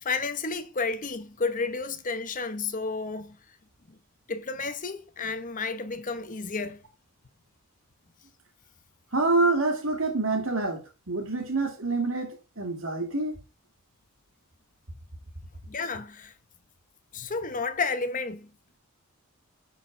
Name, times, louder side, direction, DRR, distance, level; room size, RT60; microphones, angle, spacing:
voice 1, 0.0-3.4 3.9-4.0 4.3-6.8 15.7-16.3 17.1-18.5, left 4 dB, 40° left, 0.9 m, -31 dB
voice 2, 9.1-13.4, right 3 dB, 70° right, 2.2 m, -27 dB
9.9 x 4.5 x 5.1 m
head